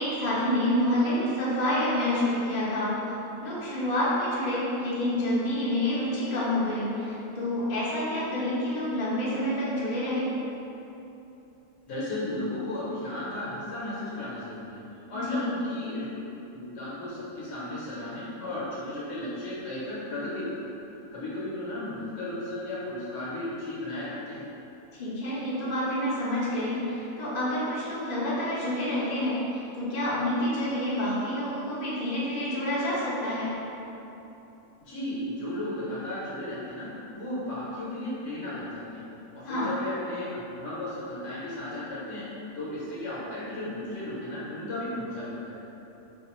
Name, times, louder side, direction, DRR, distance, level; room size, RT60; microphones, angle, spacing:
voice 1, 0.0-2.9 3.4-10.3 15.3-15.5 24.9-33.5 39.4-39.7, left 1 dB, 40° left, -9 dB, 0.7 m, -28 dB
voice 2, 11.9-14.8 15.1-16.1 16.5-20.7 21.1-24.4 34.8-39.0 39.3-42.2 42.5-45.6, left 1 dB, 60° left, -8 dB, 1.1 m, -35 dB
4.2 x 2.4 x 3.0 m, 3.0 s
omnidirectional pair, 1.5 m